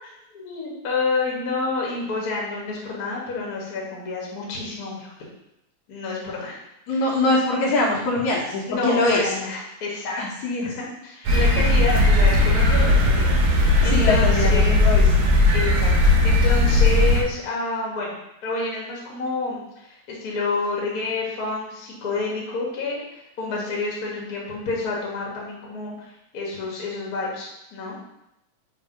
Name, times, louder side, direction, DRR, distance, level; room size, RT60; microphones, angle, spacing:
voice 1, 0.0-5.1 5.9-6.6 6.9-7.1 8.7-10.5 10.8-14.9 15.5-15.9 16.2-18.1 18.4-28.0, left 3 dB, 40° left, -4 dB, 1.6 m, -29 dB
voice 2, 6.9-9.2 10.2-10.7 13.9-15.1, left 2 dB, 75° left, -4 dB, 2.6 m, -22 dB
sound 1, 11.2-17.2, left 2 dB, 85° right, 3.0 m, -17 dB
6.5 x 3.4 x 5.1 m, 0.85 s
omnidirectional pair, 3.3 m